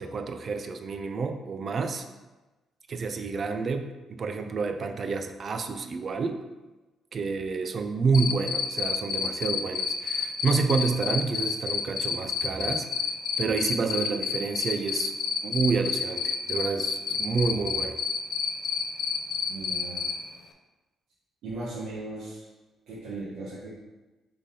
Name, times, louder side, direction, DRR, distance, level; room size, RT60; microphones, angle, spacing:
voice 1, 0.0-2.0 2.9-6.4 7.1-12.9 13.4-15.1 15.4-18.0, right 4 dB, 50° right, 7 dB, 0.4 m, -29 dB
Cricket, 8.1-20.1, left 7 dB, 70° left, 0.4 m, -28 dB
voice 2, 19.5-20.1 21.4-22.5 22.9-23.7, right 2 dB, 80° right, -8 dB, 1.0 m, -37 dB
3.6 x 3.4 x 4.1 m, 1.1 s
cardioid pair, 90°, 0 cm